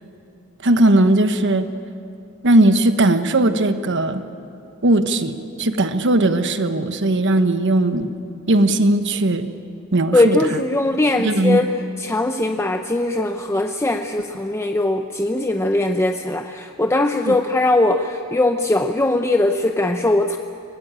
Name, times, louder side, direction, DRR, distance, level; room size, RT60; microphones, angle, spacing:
voice 1, 0.6-1.7 2.4-4.2 4.8-8.1 8.5-9.5 9.9-10.6 11.2-11.6 17.3-17.4, right 1 dB, 60° right, 9 dB, 1.2 m, -18 dB
voice 2, 10.1-11.7 12.0-20.4, left 2 dB, 15° left, 5 dB, 0.6 m, -20 dB
23.0 x 18.0 x 8.8 m, 2.6 s
head